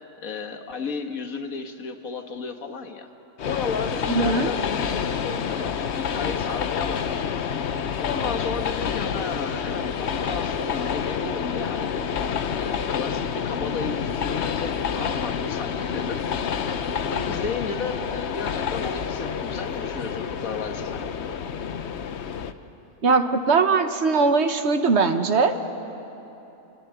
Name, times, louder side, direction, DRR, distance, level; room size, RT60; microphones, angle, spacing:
voice 1, 0.2-3.1 3.4-7.5 8.0-12.1 12.5-16.2 16.8-21.4, left 5 dB, 80° left, 6 dB, 1.8 m, -34 dB
Train, 3.4-22.5, left 7 dB, 60° left, 1.0 m, -28 dB
voice 2, 4.1-4.5 23.0-25.5, right 4 dB, 55° right, 8 dB, 1.3 m, -20 dB
27.0 x 18.0 x 9.1 m, 3.0 s
omnidirectional pair, 1.4 m